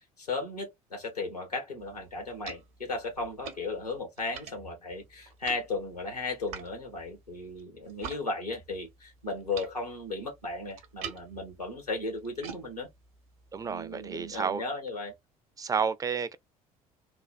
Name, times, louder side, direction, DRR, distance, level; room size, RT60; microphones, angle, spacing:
voice 1, 0.2-12.9 13.6-15.1, left 3 dB, 90° left, 1.2 m, -35 dB
sound 1, 1.8-8.2 8.5-14.4, right 6 dB, 65° right, 0.8 m, -47 dB
voice 2, 13.5-14.6 15.6-16.4, right 6 dB, 20° right, 0.4 m, -31 dB
3.2 x 2.2 x 2.4 m
figure-of-eight pair, 60°, 19 cm